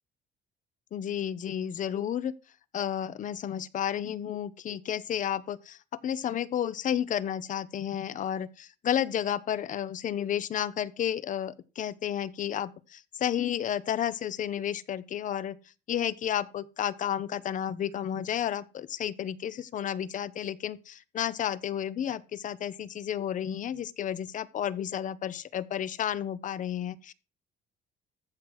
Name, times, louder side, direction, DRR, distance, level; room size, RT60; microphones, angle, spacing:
voice 1, 0.9-2.3 2.7-5.8 6.0-15.6 15.9-27.1, left 10 dB, 50° left, 0.8 m, -32 dB
14.5 x 6.2 x 4.8 m
cardioid pair, 110°, 17 cm